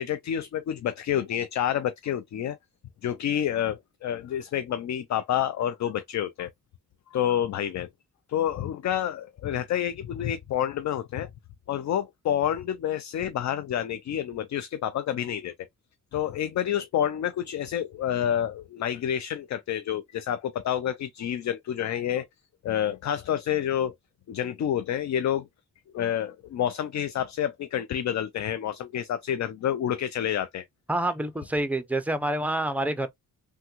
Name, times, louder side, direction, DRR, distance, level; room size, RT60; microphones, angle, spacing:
voice 1, 0.0-2.6 3.0-6.5 7.1-7.9 8.3-11.3 11.7-15.5 16.1-22.3 22.6-23.9 24.3-25.5 25.9-30.6, left 10 dB, 55° left, 0.4 m, -28 dB
voice 2, 30.9-33.1, right 1 dB, 5° right, 0.5 m, -27 dB
3.4 x 2.2 x 2.9 m
cardioid pair, 85°, 35 cm